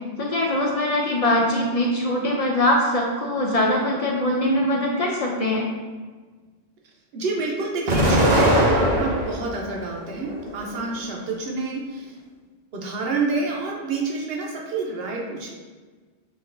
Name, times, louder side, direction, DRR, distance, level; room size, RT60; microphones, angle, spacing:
voice 1, 0.2-5.7, left 1 dB, 55° left, -1 dB, 0.4 m, -22 dB
voice 2, 7.1-12.1 12.7-15.5, right 3 dB, 65° right, -1 dB, 0.9 m, -28 dB
Explosion, 7.9-9.5 10.0-10.9, right 1 dB, 45° right, 0.6 m, -20 dB
5.2 x 2.5 x 2.5 m, 1.4 s
omnidirectional pair, 1.1 m